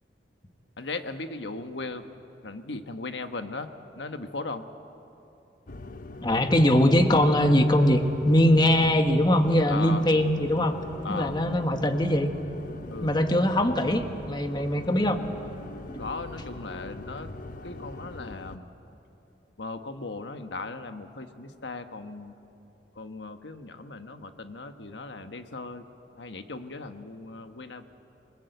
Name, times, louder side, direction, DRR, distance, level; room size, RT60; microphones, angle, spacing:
voice 1, 0.8-2.0 2.4-3.7 3.9-4.6 9.7-10.0 11.0-11.3 12.9-13.2 14.5-14.6 16.0-17.3 17.6-18.7 19.6-22.3 22.9-25.8 26.2-27.9, left 3 dB, 90° left, 8 dB, 1.3 m, -37 dB
sound 1, 5.7-18.6, left 2 dB, 50° left, 0.8 m, -41 dB
voice 2, 6.2-10.8 11.1-12.3 13.0-15.2 15.9-16.0, left 1 dB, 25° left, 6 dB, 1.3 m, -22 dB
27.0 x 20.5 x 8.1 m, 2.9 s
head